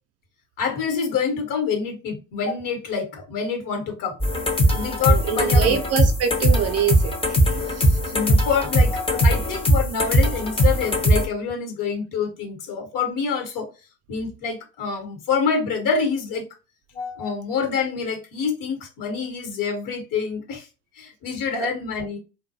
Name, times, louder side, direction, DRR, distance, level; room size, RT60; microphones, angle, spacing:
voice 1, 0.6-4.2 4.7-5.8 8.1-13.7 14.1-16.4 16.9-20.7 21.0-22.2, left 6 dB, 50° left, 1.2 m, -26 dB
sound 1, 4.2-11.3, equal, 15° left, 0.7 m, -20 dB
voice 2, 5.1-8.1 21.6-21.7, right 8 dB, 40° right, 0.5 m, -26 dB
2.3 x 2.2 x 2.7 m
hypercardioid pair, 75°, 41 cm